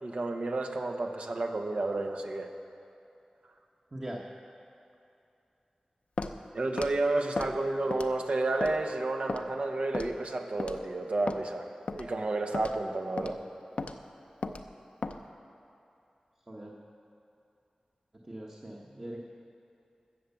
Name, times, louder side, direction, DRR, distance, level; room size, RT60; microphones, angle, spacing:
voice 1, 0.0-2.5 6.5-11.7 11.9-13.4, right 2 dB, 70° right, 4 dB, 1.1 m, -31 dB
voice 2, 3.9-4.2 13.2-13.4 16.5-16.8 18.2-19.2, right 1 dB, 35° right, -3 dB, 1.3 m, -41 dB
Walk footsteps, 6.2-6.4 6.8-6.9 7.4-7.5 7.9-8.2 8.6-8.7 9.3-9.4 9.9-10.2 10.6-10.8 11.3-11.4 11.9-12.1 12.5-12.8 13.2-13.3 13.8-14.0 14.4-14.6 15.0-15.2, left 3 dB, 75° left, 0.6 m, -35 dB
14.0 x 8.0 x 7.1 m, 2.8 s
wide cardioid pair, 50°, 2 cm